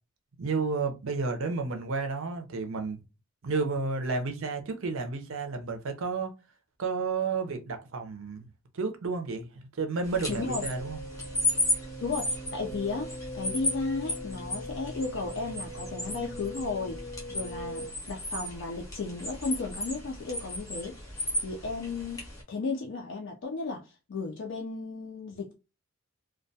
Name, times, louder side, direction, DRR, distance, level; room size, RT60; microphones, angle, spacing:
voice 1, 0.4-3.0 3.4-6.3 6.8-8.5 8.7-11.0, right 4 dB, 65° right, 0.5 m, -31 dB
sound 1, 10.0-22.4, left 1 dB, 15° left, 0.6 m, -35 dB
sound 2, 10.3-17.9, equal, 75° left, 0.8 m, -41 dB
voice 2, 10.3-10.6 12.0-21.0 21.4-25.5, left 3 dB, 55° left, 0.4 m, -34 dB
2.2 x 2.2 x 2.6 m
head